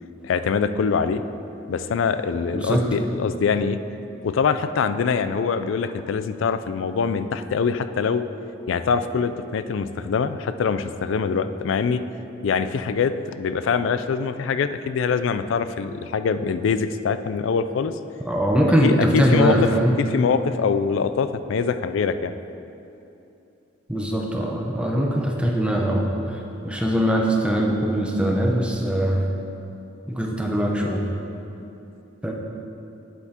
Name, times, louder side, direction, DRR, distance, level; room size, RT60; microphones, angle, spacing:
voice 1, 0.2-1.2 1.7-3.8 4.2-8.2 8.7-12.0 12.4-18.0 18.8-19.7 20.0-22.3, left 5 dB, 65° left, 11 dB, 0.3 m, -24 dB
voice 2, 18.3-20.0 23.9-26.1 26.6-29.2 30.1-31.0 32.2-32.3, equal, 5° right, -1 dB, 0.7 m, -21 dB
9.3 x 7.9 x 2.9 m, 2.8 s
head